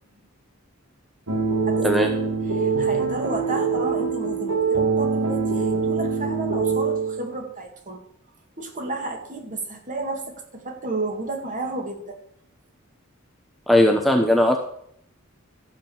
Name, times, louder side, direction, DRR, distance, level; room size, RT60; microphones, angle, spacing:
sound 1, 1.3-7.4, right 5 dB, 85° right, 1.7 m, -24 dB
voice 1, 1.8-2.1 13.7-14.6, left 1 dB, ahead, 2 dB, 0.8 m, -18 dB
voice 2, 2.6-8.0 8.6-12.2, right 2 dB, 40° right, 2 dB, 2.2 m, -32 dB
13.0 x 5.2 x 7.1 m, 0.69 s
head